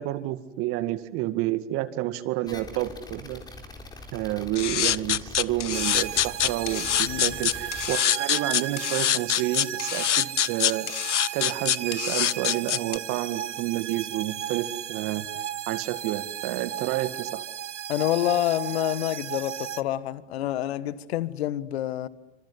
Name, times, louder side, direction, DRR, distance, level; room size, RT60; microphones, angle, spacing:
voice 1, 0.0-3.4 4.1-15.3 15.7-17.4, right 15 dB, 40° right, 2.1 m, -30 dB
sound 1, 2.5-8.0, left 2 dB, 10° left, 3.8 m, -43 dB
sound 2, 4.6-13.0, left 11 dB, 75° left, 0.9 m, -24 dB
sound 3, 5.7-19.8, right 10 dB, 80° right, 1.0 m, -35 dB
voice 2, 17.9-22.1, left 13 dB, 60° left, 1.6 m, -27 dB
27.5 x 26.0 x 8.2 m
hypercardioid pair, 115°, 36 cm